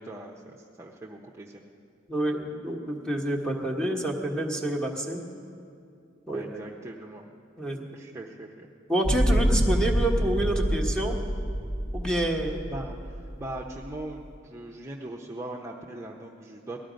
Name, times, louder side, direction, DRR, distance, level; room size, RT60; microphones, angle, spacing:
voice 1, 0.0-1.6 6.3-7.3 7.9-8.7 12.7-16.8, right 1 dB, 15° right, -3 dB, 0.7 m, -40 dB
voice 2, 2.1-5.2 6.3-6.6 7.6-7.9 8.9-11.2 11.9-12.7, right 1 dB, 5° left, 1 dB, 1.3 m, -28 dB
sound 1, 9.0-14.3, equal, 35° left, 1.3 m, -27 dB
19.0 x 13.0 x 5.1 m, 2.5 s
head